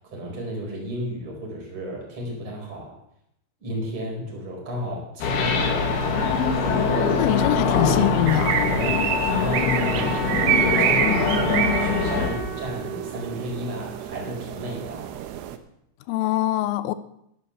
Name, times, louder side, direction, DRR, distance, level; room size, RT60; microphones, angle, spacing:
voice 1, 0.1-2.9 3.6-6.5 8.7-15.1, equal, 25° right, 4.8 m, -33 dB
sound 1, 5.2-12.3, left 4 dB, 60° left, 3.6 m, -23 dB
voice 2, 7.2-8.7 16.1-17.0, left 13 dB, 80° left, 3.1 m, -23 dB
sound 2, 8.3-15.6, right 9 dB, 75° right, 2.5 m, -27 dB
sound 3, 9.1-14.1, right 1 dB, 45° right, 2.5 m, -37 dB
13.0 x 11.0 x 7.0 m
omnidirectional pair, 5.9 m